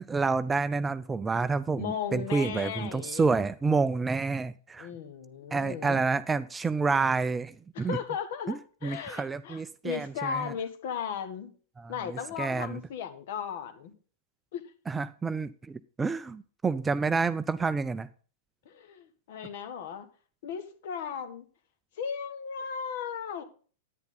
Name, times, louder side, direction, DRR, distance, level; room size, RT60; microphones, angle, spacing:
voice 1, 0.0-4.9 5.5-8.0 8.5-10.5 11.8-12.8 14.9-18.1, right 4 dB, 15° right, 14 dB, 0.5 m, -29 dB
voice 2, 1.8-3.2 4.8-6.1 7.7-11.5 11.9-13.9 14.5-14.6 18.6-20.1 20.4-21.5 22.0-23.4, left 7 dB, 55° left, 9 dB, 1.6 m, -36 dB
10.5 x 9.8 x 4.0 m, 0.40 s
figure-of-eight pair, 95°, 0 cm